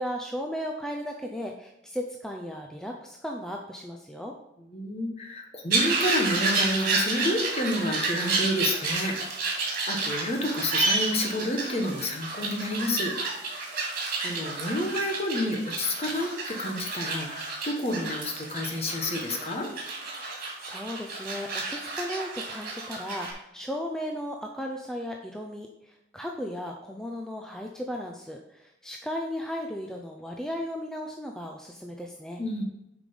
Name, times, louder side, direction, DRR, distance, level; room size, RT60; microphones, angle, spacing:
voice 1, 0.0-4.3 20.6-32.4, equal, 5° left, 1 dB, 0.5 m, -35 dB
voice 2, 4.7-9.1 9.6-13.1 13.4-13.5 14.2-19.7 32.4-32.6, left 1 dB, 35° left, 2 dB, 1.3 m, -29 dB
sound 1, 5.7-23.3, right 3 dB, 50° right, 2.4 m, -30 dB
7.4 x 5.0 x 5.3 m, 0.85 s
head